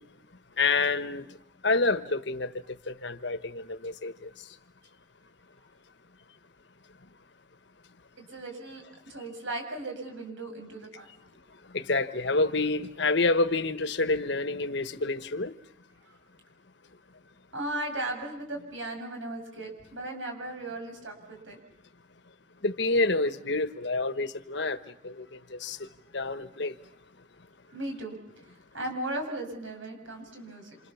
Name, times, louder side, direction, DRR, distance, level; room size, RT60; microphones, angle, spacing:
voice 1, 0.6-1.2 1.6-2.5 2.9-4.3 11.7-15.5 22.6-24.8 25.0-25.2 25.5-25.8 26.1-26.7, left 3 dB, 65° left, 1.3 m, -28 dB
voice 2, 8.3-11.1 16.0-16.2 17.5-21.6 27.7-30.8, right 1 dB, 85° right, 7.7 m, -37 dB
28.5 x 27.5 x 7.2 m
head